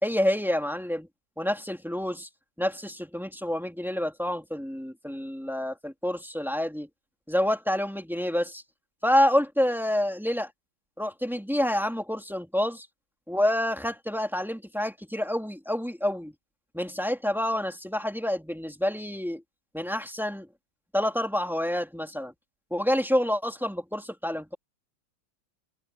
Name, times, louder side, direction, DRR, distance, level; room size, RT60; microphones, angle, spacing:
voice 1, 0.0-1.1 1.4-2.3 2.6-6.9 7.3-8.6 9.0-10.5 11.0-12.9 13.3-16.3 16.7-19.4 19.7-20.5 20.9-22.3 22.7-24.5, left 1 dB, ahead, 2.8 m, -28 dB
omnidirectional pair, 2.3 m